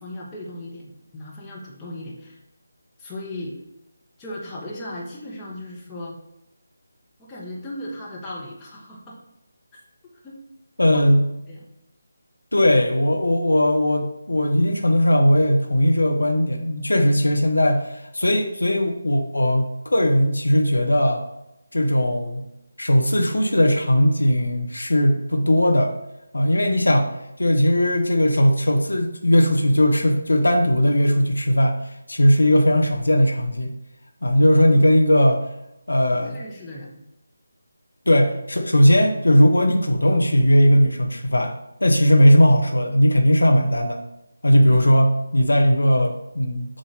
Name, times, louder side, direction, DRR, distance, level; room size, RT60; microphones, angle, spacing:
voice 1, 0.0-2.4 3.0-3.6 4.2-6.2 7.2-9.2 10.2-10.4 10.9-11.1 11.5-11.6 36.2-36.9 44.5-44.8, left 1 dB, 15° left, -5 dB, 1.3 m, -36 dB
voice 2, 10.8-11.2 12.5-21.2 21.7-22.4 22.8-25.9 26.3-27.1 27.4-31.8 32.1-33.7 34.2-35.4 35.9-36.4 38.1-41.5 41.8-44.0 44.4-46.8, equal, 75° left, 4 dB, 0.9 m, -18 dB
7.4 x 2.8 x 5.1 m, 0.89 s
figure-of-eight pair, 155°, 0 cm